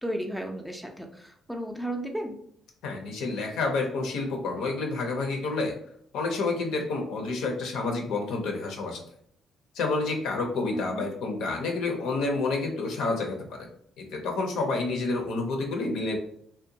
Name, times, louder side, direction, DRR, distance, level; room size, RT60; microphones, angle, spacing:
voice 1, 0.0-2.4 10.7-11.1, right 1 dB, ahead, 3 dB, 0.4 m, -34 dB
voice 2, 2.8-5.7 6.1-9.0 9.7-13.7 14.0-16.2, left 3 dB, 85° left, 2 dB, 0.6 m, -29 dB
2.7 x 2.1 x 2.7 m, 0.66 s
cardioid pair, 90°, 0 cm